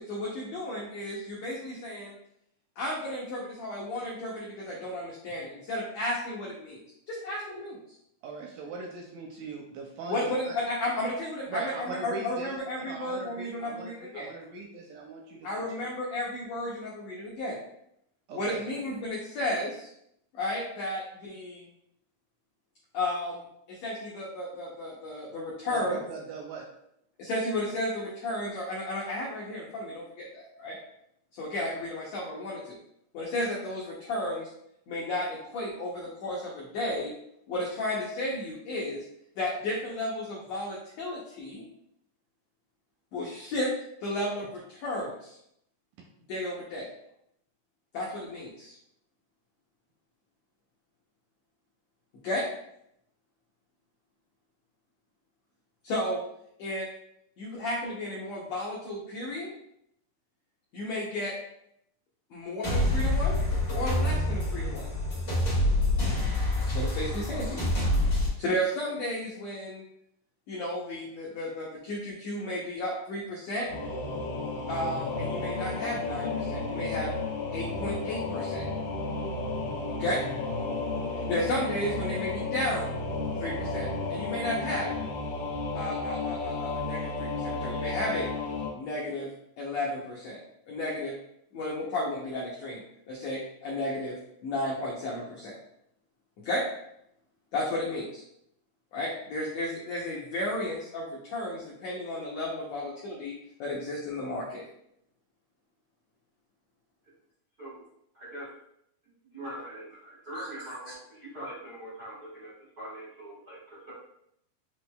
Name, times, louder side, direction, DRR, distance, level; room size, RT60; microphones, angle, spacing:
voice 1, 0.0-2.1 2.8-6.8 7.1-7.8 10.1-14.3 15.4-17.6 18.3-19.9 20.3-21.7 22.9-23.4 23.7-26.0 27.2-30.8 31.3-32.8 33.1-34.5 34.9-37.1 37.5-39.0 39.4-41.6 43.1-43.7 44.0-45.4 46.3-46.9 47.9-48.7 52.2-52.4 55.8-56.2 56.6-56.9 57.4-59.5 60.7-61.3 62.3-63.4 63.7-64.9 66.7-67.6 68.4-69.8 70.5-73.7 74.7-77.1 77.5-78.7 79.9-80.2 81.3-82.9 83.4-84.9 85.7-88.3 88.7-89.3 89.6-90.4 90.7-91.1 91.5-94.2 94.4-95.6 96.4-96.6 97.5-98.2 98.9-104.6 110.3-110.5, left 1 dB, 80° left, -4 dB, 1.5 m, -33 dB
voice 2, 8.2-10.6 11.5-15.7 18.3-18.6 25.7-26.7, right 4 dB, 80° right, 0 dB, 1.9 m, -40 dB
sound 1, 62.6-68.3, left 1 dB, 40° left, 1.1 m, -26 dB
Singing / Musical instrument, 73.7-88.7, left 3 dB, 65° left, 2.2 m, -33 dB
voice 3, 108.1-108.5 109.1-112.5 112.8-113.9, right 1 dB, 65° right, -10 dB, 0.9 m, -42 dB
6.1 x 3.1 x 2.2 m, 0.75 s
omnidirectional pair, 4.0 m